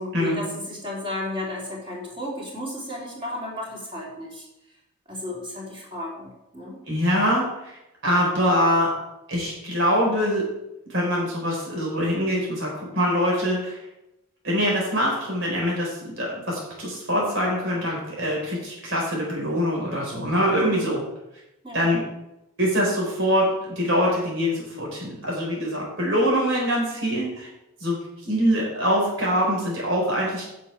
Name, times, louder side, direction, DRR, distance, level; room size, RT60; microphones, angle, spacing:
voice 1, 0.0-4.5 5.1-6.8 20.6-20.9 21.6-21.9, left 1 dB, 25° right, -3 dB, 3.5 m, -33 dB
voice 2, 6.9-8.9 9.3-10.5 10.9-13.8 14.4-21.0 21.7-22.0 22.6-27.5 27.8-28.0 28.2-30.5, equal, 55° right, -3 dB, 4.3 m, -24 dB
9.6 x 6.3 x 8.7 m, 0.89 s
head